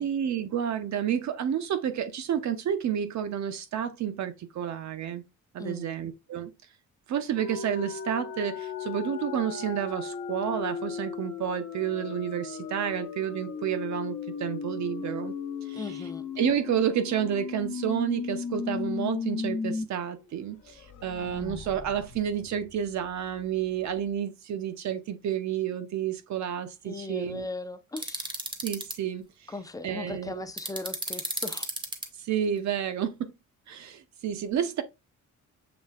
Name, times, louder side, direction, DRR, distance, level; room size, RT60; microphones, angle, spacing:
voice 1, 0.0-5.2 5.5-6.5 7.1-15.3 15.7-15.8 16.4-27.5 28.6-29.2 29.8-30.5 32.2-33.3 33.7-34.8, right 9 dB, 65° right, 0.7 m, -30 dB
voice 2, 5.6-6.0 15.7-16.2 26.8-28.4 29.5-31.7, left 3 dB, 10° left, 0.4 m, -38 dB
sound 1, 7.4-19.8 20.2-20.3 20.6-23.3, left 6 dB, 75° left, 1.0 m, -36 dB
sound 2, 28.0-28.9 30.6-32.1, right 2 dB, 15° right, 0.7 m, -33 dB
6.9 x 3.2 x 2.4 m
wide cardioid pair, 175°, 31 cm